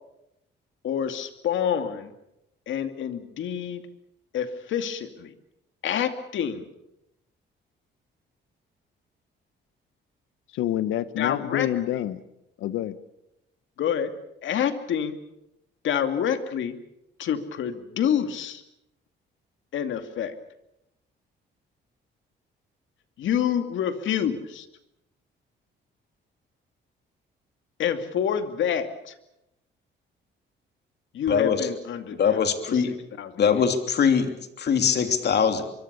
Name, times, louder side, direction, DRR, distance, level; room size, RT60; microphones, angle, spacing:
voice 1, 0.8-2.1 2.7-3.8 4.3-5.3 5.8-6.7 11.2-12.0 13.8-14.1 14.4-15.2 15.8-16.8 17.2-18.6 19.7-20.3 23.2-24.7 27.8-29.1 31.1-32.4 32.7-33.6, left 8 dB, 75° left, 8 dB, 2.4 m, -27 dB
voice 2, 10.5-12.2 12.6-13.0, left 12 dB, 90° left, 14 dB, 1.3 m, -27 dB
voice 3, 31.3-31.6 32.2-32.9 33.4-35.6, left 7 dB, 55° left, 7 dB, 3.1 m, -22 dB
24.5 x 23.5 x 6.9 m, 0.85 s
cardioid pair, 90°, 20 cm